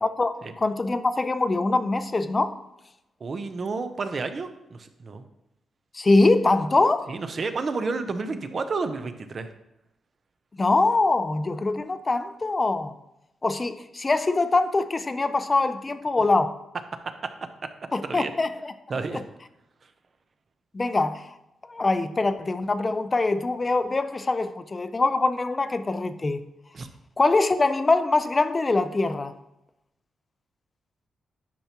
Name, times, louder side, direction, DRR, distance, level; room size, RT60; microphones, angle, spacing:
voice 1, 0.0-2.5 5.9-7.1 10.6-12.9 13.4-16.5 17.9-18.7 19.1-19.2 20.7-21.2 21.7-26.4 27.2-29.3, left 3 dB, 25° left, 11 dB, 0.5 m, -23 dB
voice 2, 3.2-5.2 7.1-9.5 18.0-18.3 18.9-19.2 26.7-26.9, right 4 dB, 40° right, 8 dB, 0.7 m, -30 dB
10.0 x 5.9 x 2.9 m, 0.88 s
cardioid pair, 125°, 0 cm